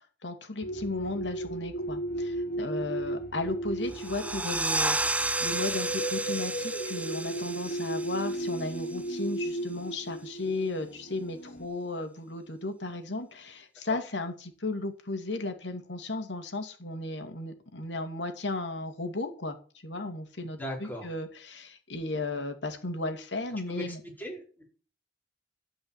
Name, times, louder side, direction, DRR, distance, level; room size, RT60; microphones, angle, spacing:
voice 1, 0.0-19.6 19.8-24.0, left 2 dB, 85° left, 6 dB, 2.4 m, -35 dB
sound 1, 0.6-11.7, right 1 dB, 55° left, 1.5 m, -35 dB
sound 2, 3.9-9.3, right 2 dB, 10° right, 0.6 m, -32 dB
voice 2, 20.6-21.1 23.7-24.6, equal, 10° left, -2 dB, 5.0 m, -38 dB
12.5 x 5.5 x 8.7 m, 0.39 s
head